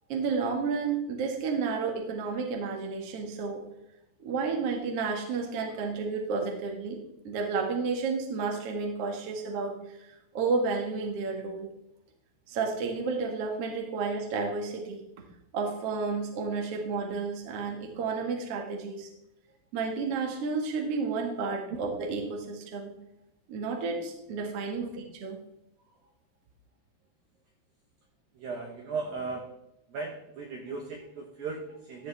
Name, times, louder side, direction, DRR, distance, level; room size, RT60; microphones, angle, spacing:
voice 1, 0.1-3.6 4.2-7.0 7.2-10.1 10.3-11.7 12.5-15.0 15.5-19.1 19.7-22.9 23.5-24.9 25.2-25.4, right 4 dB, 60° right, 2 dB, 1.6 m, -31 dB
voice 2, 28.3-29.6 29.9-32.1, right 4 dB, 75° right, 2 dB, 2.2 m, -37 dB
13.5 x 8.1 x 3.4 m, 0.84 s
omnidirectional pair, 5.5 m